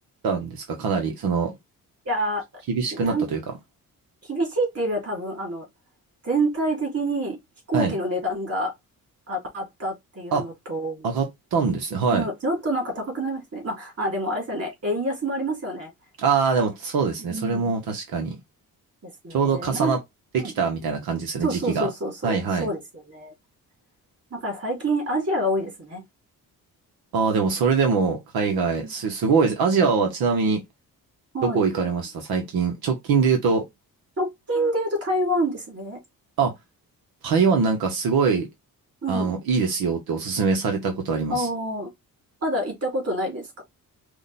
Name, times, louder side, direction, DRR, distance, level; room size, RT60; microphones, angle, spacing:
voice 1, 0.2-1.5 2.7-3.4 7.7-7.9 10.3-10.4 11.0-11.3 11.5-12.3 16.2-18.4 19.3-20.0 20.3-21.9 22.2-22.7 27.1-30.6 31.4-33.6 36.4-36.5 37.2-38.5 39.1-41.5, right 5 dB, 90° right, 1.3 m, -23 dB
voice 2, 2.0-2.4 2.9-3.2 4.3-5.7 6.2-7.4 7.7-8.7 9.3-11.1 12.0-15.9 17.3-17.7 19.0-19.9 20.4-20.5 21.4-22.8 23.1-23.3 24.3-26.0 28.8-28.9 31.3-31.6 34.2-36.0 39.0-39.3 41.3-41.9 42.4-43.6, right 1 dB, 45° right, 3.1 m, -27 dB
5.0 x 2.5 x 4.2 m
cardioid pair, 100°, 35 cm